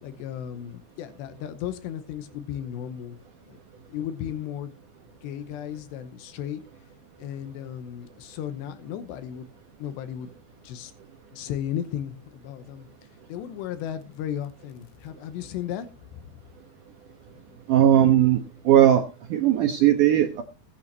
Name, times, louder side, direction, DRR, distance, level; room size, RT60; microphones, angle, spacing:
voice 1, 0.0-3.2 3.5-3.6 3.9-4.7 5.2-6.6 7.2-9.5 9.8-10.3 10.6-10.9 11.3-12.9 13.3-16.2 17.3-17.6, left 10 dB, 85° left, 10 dB, 3.1 m, -35 dB
voice 2, 17.7-18.4 18.7-19.0 19.3-20.4, right 11 dB, 70° right, 5 dB, 2.0 m, -18 dB
21.0 x 8.7 x 2.9 m, 0.29 s
omnidirectional pair, 5.0 m